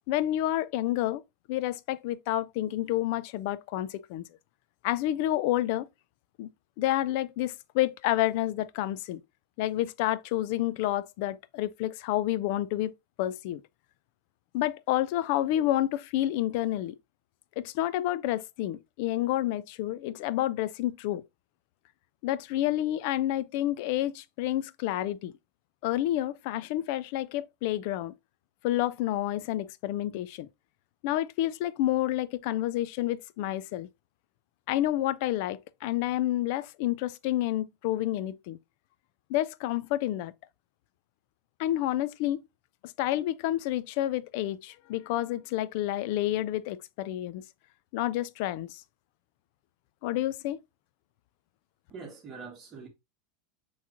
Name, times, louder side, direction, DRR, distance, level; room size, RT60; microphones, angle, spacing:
voice 1, 0.1-1.2 1.5-4.2 4.8-5.9 6.4-6.5 6.8-9.2 9.6-13.6 14.5-17.0 17.6-21.2 22.2-25.3 25.8-28.1 28.6-30.5 31.0-33.9 34.7-38.6 39.3-40.3 41.6-42.4 43.0-47.4 47.9-48.8 50.0-50.6, left 14 dB, 55° left, 0.3 m, -29 dB
voice 2, 51.9-52.9, right 4 dB, 25° right, 1.4 m, -43 dB
6.0 x 3.0 x 2.6 m
supercardioid pair, 155°, 0 cm